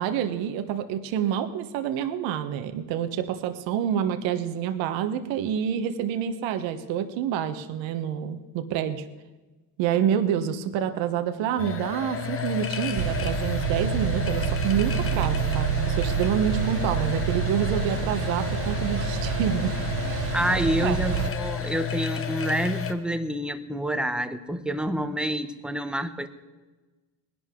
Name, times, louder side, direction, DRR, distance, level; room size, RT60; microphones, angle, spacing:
voice 1, 0.0-9.0 9.8-20.3 20.8-21.0, right 9 dB, 70° right, 9 dB, 1.2 m, -28 dB
sound 1, 11.6-22.9, left 7 dB, 30° left, 1.2 m, -31 dB
sound 2, 13.0-21.3, right 9 dB, 50° right, 1.0 m, -28 dB
voice 2, 20.3-26.3, right 1 dB, ahead, 9 dB, 0.9 m, -28 dB
19.5 x 11.5 x 3.7 m, 1.2 s
supercardioid pair, 100°, 47 cm